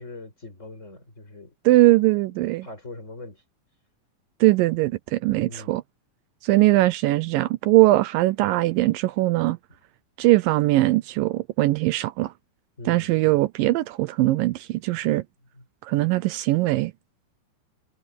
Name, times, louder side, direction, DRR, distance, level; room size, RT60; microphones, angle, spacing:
voice 1, 0.0-1.5 2.1-3.4 5.4-5.8 9.7-9.8 12.8-13.1 15.5-15.6, left 2 dB, 20° left, 5.0 m, -42 dB
voice 2, 1.7-2.7 4.4-5.8 6.4-9.6 10.2-12.3 12.9-15.2 15.8-16.9, right 18 dB, 80° right, 2.2 m, -20 dB
omnidirectional pair, 4.1 m